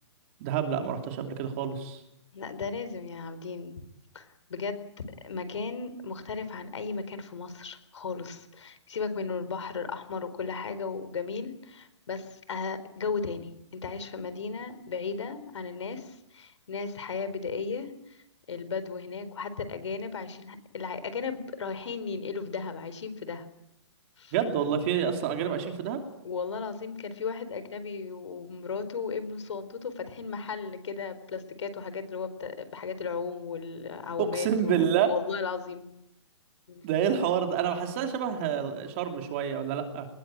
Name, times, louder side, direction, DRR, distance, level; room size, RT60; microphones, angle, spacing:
voice 1, 0.4-2.0 24.3-26.0 34.2-35.1 36.8-40.1, right 8 dB, 25° right, 5 dB, 2.8 m, -28 dB
voice 2, 2.3-3.7 4.1-4.9 5.2-23.5 24.2-24.3 26.2-35.9 36.7-36.9, left 5 dB, 75° left, 12 dB, 4.3 m, -35 dB
23.5 x 20.5 x 9.0 m, 0.81 s
hypercardioid pair, 175°, 15 cm